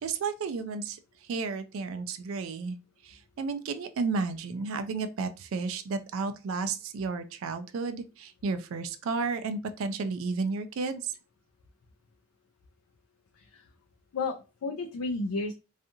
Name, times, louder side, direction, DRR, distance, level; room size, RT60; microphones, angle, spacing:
voice 1, 0.0-2.8 3.0-11.2, right 4 dB, 65° right, 0.3 m, -32 dB
voice 2, 14.1-15.5, left 3 dB, 80° left, 0.4 m, -32 dB
2.6 x 2.4 x 2.5 m
head